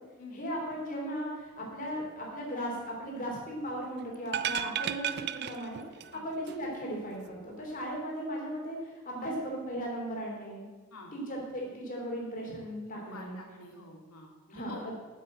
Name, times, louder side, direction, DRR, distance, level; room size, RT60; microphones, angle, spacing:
voice 1, 0.3-1.3 1.6-5.1 5.3-5.8 6.2-8.8 9.1-10.6 11.1-13.4 14.5-14.9, equal, 40° left, -2 dB, 3.4 m, -37 dB
sound 1, 4.3-6.2 6.5-6.6, right 9 dB, 45° right, 0.4 m, -34 dB
voice 2, 12.9-14.9, left 2 dB, 85° left, 1 dB, 2.5 m, -47 dB
8.6 x 8.3 x 7.7 m, 1.4 s
head